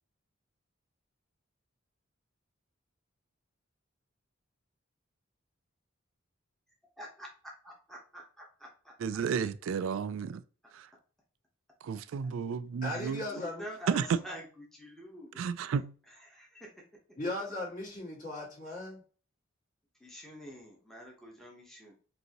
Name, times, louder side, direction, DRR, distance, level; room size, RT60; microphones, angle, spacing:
voice 1, 7.0-7.3 7.6-8.9 12.9-15.7 16.1-16.8 20.0-21.9, equal, ahead, 1.0 m, -47 dB
voice 2, 9.0-10.4 10.7-10.9 11.8-13.2 13.9-14.2 15.4-15.9, right 6 dB, 85° right, 0.3 m, -32 dB
voice 3, 12.8-13.6 17.2-19.0, left 1 dB, 40° left, 2.2 m, -37 dB
5.2 x 2.7 x 2.9 m
head